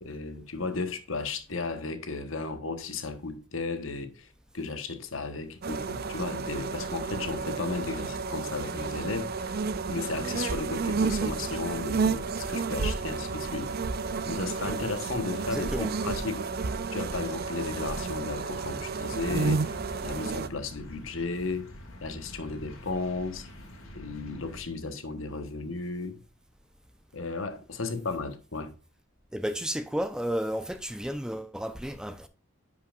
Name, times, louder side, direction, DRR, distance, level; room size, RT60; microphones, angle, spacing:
voice 1, 0.0-4.3 4.5-9.6 9.9-13.7 14.3-16.5 16.9-21.7 22.0-23.5 23.9-26.2 27.1-28.7, left 3 dB, 70° left, 1.2 m, -34 dB
sound 1, 5.6-20.5, right 4 dB, 50° right, 0.5 m, -31 dB
sound 2, 10.9-24.6, equal, 85° left, 2.1 m, -47 dB
voice 2, 15.5-15.9 29.3-32.3, equal, 5° right, 0.6 m, -32 dB
10.5 x 5.6 x 2.5 m
head